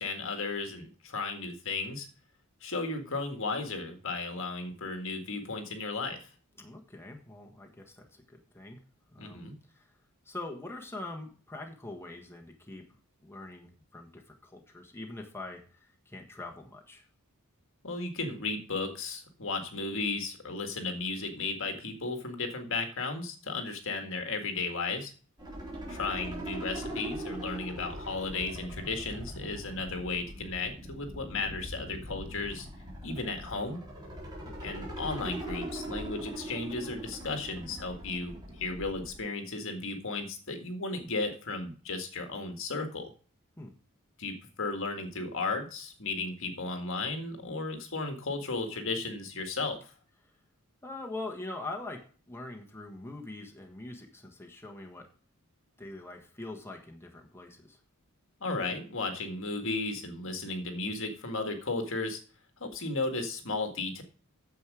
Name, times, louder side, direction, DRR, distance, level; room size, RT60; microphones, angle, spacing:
voice 1, 0.0-2.1 2.6-6.3 9.2-9.5 17.8-25.1 25.9-32.7 33.0-33.8 34.6-43.1 44.2-49.9 58.4-62.2 62.6-64.0, left 3 dB, 60° left, 5 dB, 1.9 m, -34 dB
voice 2, 6.6-8.8 9.1-9.9 10.2-17.1 34.4-34.6 43.6-43.7 50.8-55.1 55.8-57.8, left 2 dB, 10° left, 1 dB, 1.4 m, -43 dB
sound 1, 25.4-39.2, right 1 dB, 20° right, 3.8 m, -41 dB
9.5 x 7.5 x 4.8 m, 0.39 s
head